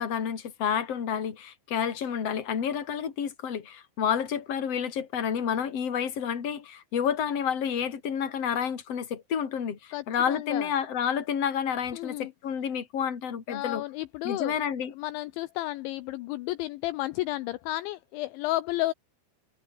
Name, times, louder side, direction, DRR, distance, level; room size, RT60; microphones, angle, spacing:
voice 1, 0.0-13.8 14.2-14.9, left 8 dB, 35° left, 3.3 m, -30 dB
voice 2, 9.9-10.7 11.9-12.3 13.5-14.5 14.9-18.9, left 17 dB, 80° left, 2.9 m, -32 dB
omnidirectional pair, 5.8 m